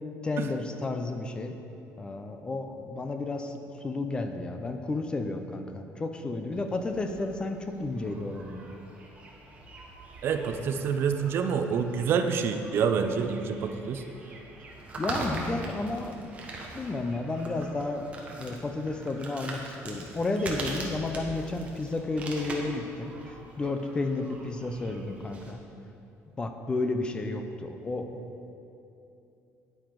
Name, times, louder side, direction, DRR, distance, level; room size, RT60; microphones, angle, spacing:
voice 1, 0.2-1.5 2.0-8.7 15.0-25.6 26.4-28.2, left 2 dB, 15° left, 6 dB, 0.4 m, -32 dB
sound 1, 6.5-25.5, right 2 dB, 20° right, 1.1 m, -42 dB
voice 2, 10.2-14.0, right 6 dB, 45° right, 7 dB, 0.5 m, -27 dB
9.4 x 8.9 x 4.6 m, 2.8 s
cardioid pair, 175°, 6 cm